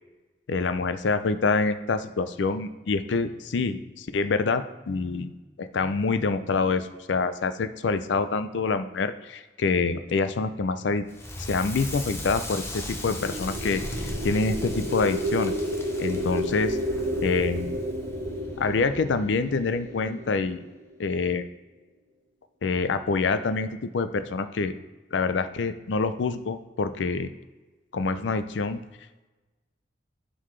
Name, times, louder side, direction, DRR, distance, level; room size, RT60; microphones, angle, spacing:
voice 1, 0.5-5.3 5.6-11.0 11.4-15.5 16.0-16.8 17.2-17.8 18.6-20.7 21.0-21.5 22.6-23.7 23.9-24.7 25.1-27.3 27.9-28.8, left 4 dB, 75° left, 11 dB, 0.5 m, -26 dB
Crackle, 11.1-20.0, left 1 dB, 15° left, 0.8 m, -37 dB
sound 1, 12.8-20.9, equal, 50° right, 1.2 m, -32 dB
11.0 x 3.9 x 3.2 m, 1.2 s
head